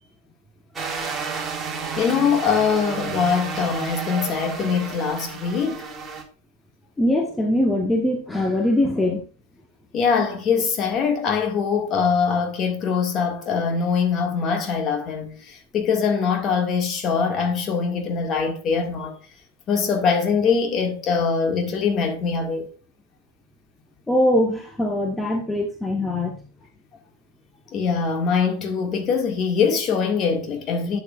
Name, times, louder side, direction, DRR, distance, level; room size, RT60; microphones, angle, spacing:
sound 1, 0.8-6.2, right 5 dB, 15° right, 2.0 m, -31 dB
voice 1, 2.0-5.9 9.9-19.2 19.7-22.7 27.7-31.0, left 6 dB, 30° left, 1.9 m, -23 dB
voice 2, 7.0-9.2 24.1-26.4, left 1 dB, 10° left, 1.1 m, -22 dB
11.5 x 8.0 x 2.4 m
figure-of-eight pair, 90°, 0 cm